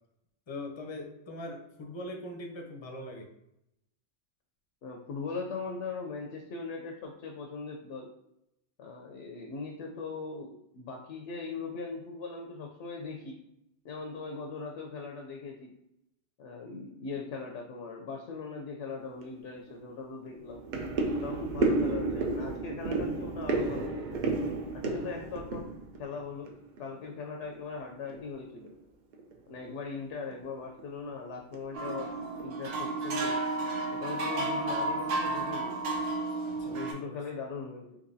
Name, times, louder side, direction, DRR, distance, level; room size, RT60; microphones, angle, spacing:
voice 1, 0.5-3.3 36.4-37.2, left 1 dB, 35° left, 2 dB, 0.5 m, -41 dB
voice 2, 4.8-8.1 8.8-13.4 13.8-15.7 16.4-20.6 21.1-24.1 24.7-25.7 26.0-26.5 26.8-28.7 29.5-33.5 33.9-35.8 36.6-38.0, left 4 dB, 80° left, 2 dB, 0.9 m, -40 dB
sound 1, 19.2-19.3 19.7-19.9 20.2-26.8 27.0-27.7 28.0-28.3 28.6-28.7 29.1-29.3 29.7-29.8 30.3-30.8 31.4-31.6 31.9-32.6 32.9-33.0, right 3 dB, 55° right, 0.5 m, -32 dB
sound 2, 31.7-36.9, right 2 dB, 85° right, 1.1 m, -32 dB
3.8 x 2.9 x 2.6 m, 0.84 s
omnidirectional pair, 1.2 m